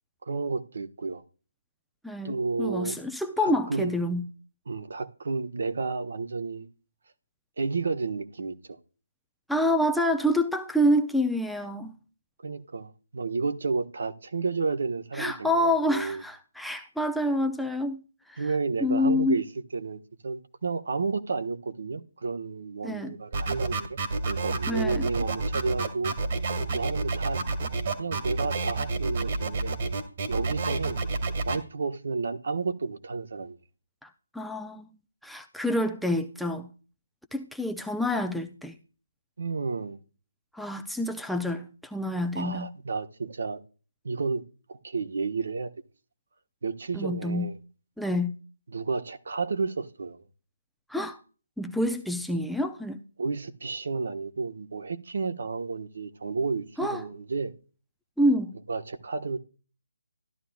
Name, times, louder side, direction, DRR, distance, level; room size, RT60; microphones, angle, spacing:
voice 1, 0.2-1.2 2.2-2.9 3.4-4.0 4.7-6.7 7.6-8.8 12.4-16.2 18.4-19.4 19.7-24.0 24.2-26.1 26.7-27.4 28.0-29.7 30.3-31.0 31.4-33.6 39.4-40.0 42.3-43.6 44.0-44.4 44.7-45.7 46.6-47.6 48.7-50.2 53.2-57.5 58.7-59.4, right 4 dB, 60° right, 1.2 m, -31 dB
voice 2, 2.0-4.2 9.5-12.0 15.2-18.0 18.3-18.4 18.8-19.4 22.8-23.1 24.7-25.1 34.0-34.1 34.3-34.9 35.2-36.7 37.3-38.7 40.5-42.7 46.9-47.5 48.0-48.3 50.9-51.2 51.6-53.0 56.8-57.0 58.2-58.5, left 1 dB, ahead, 0.6 m, -27 dB
sound 1, 23.3-31.6, right 3 dB, 40° right, 1.9 m, -29 dB
14.0 x 11.5 x 2.4 m
figure-of-eight pair, 155°, 0 cm